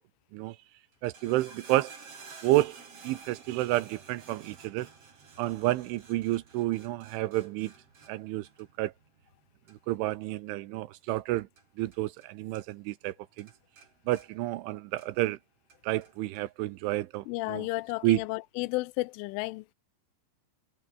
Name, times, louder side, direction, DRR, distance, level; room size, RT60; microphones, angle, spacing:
sound 1, 0.9-12.3 12.5-13.1 13.4-15.3 15.7-16.4 17.1-17.2, right 5 dB, 35° right, 4.1 m, -53 dB
voice 1, 1.0-1.9 2.4-4.9 5.4-7.7 8.1-8.9 9.7-11.5 11.8-13.5 14.1-15.4 15.8-17.7 18.0-18.2, right 17 dB, 80° right, 3.3 m, -30 dB
voice 2, 17.3-19.7, left 22 dB, 85° left, 3.0 m, -32 dB
omnidirectional pair, 5.7 m